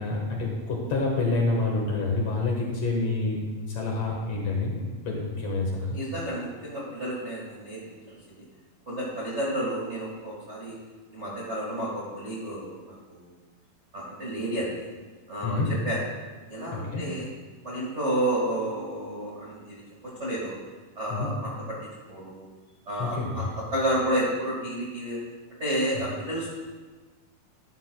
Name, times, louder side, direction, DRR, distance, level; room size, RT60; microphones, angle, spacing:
voice 1, 0.0-3.4 3.7-6.0 15.4-15.7 16.7-17.0 21.1-21.3 23.0-23.5, left 3 dB, 55° left, -1 dB, 2.0 m, -28 dB
voice 2, 5.9-8.4 8.9-10.8 11.1-13.3 13.9-14.9 15.3-15.6 15.8-16.0 16.5-17.3 17.6-20.6 20.9-21.5 22.1-22.5 22.8-23.4 23.7-25.2 25.6-26.6, right 1 dB, 45° right, -6 dB, 0.8 m, -31 dB
12.0 x 11.5 x 2.2 m, 1.3 s
omnidirectional pair, 4.3 m